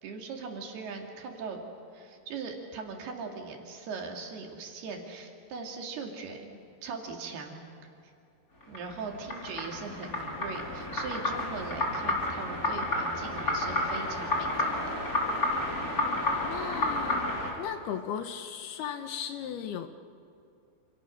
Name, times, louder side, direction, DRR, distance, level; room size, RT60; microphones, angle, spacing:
voice 1, 0.0-1.7 1.9-7.6 8.7-14.8, right 4 dB, 65° right, 2 dB, 4.4 m, -40 dB
sound 1, 8.6-17.5, left 2 dB, 20° left, 4.0 m, -31 dB
voice 2, 16.4-17.2 17.6-19.9, left 8 dB, 70° left, 8 dB, 2.8 m, -36 dB
29.0 x 28.5 x 6.6 m, 2.5 s
omnidirectional pair, 5.0 m